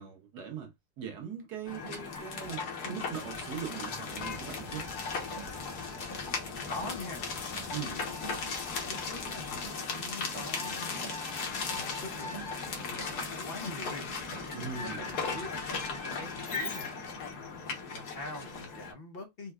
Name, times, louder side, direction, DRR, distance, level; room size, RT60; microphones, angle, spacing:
voice 1, 0.0-4.9 7.7-8.0 14.5-15.3, right 7 dB, 85° right, 1.5 m, -41 dB
sound 1, 1.7-18.9, left 4 dB, 75° left, 1.5 m, -37 dB
sound 2, 4.1-9.7, left 2 dB, 25° left, 1.1 m, -52 dB
voice 2, 6.5-7.2 7.7-8.3 8.9-10.9 11.7-12.3 12.8-14.1 14.6-16.9 17.3-19.5, left 2 dB, 45° left, 0.9 m, -44 dB
4.5 x 2.2 x 2.3 m
omnidirectional pair, 1.7 m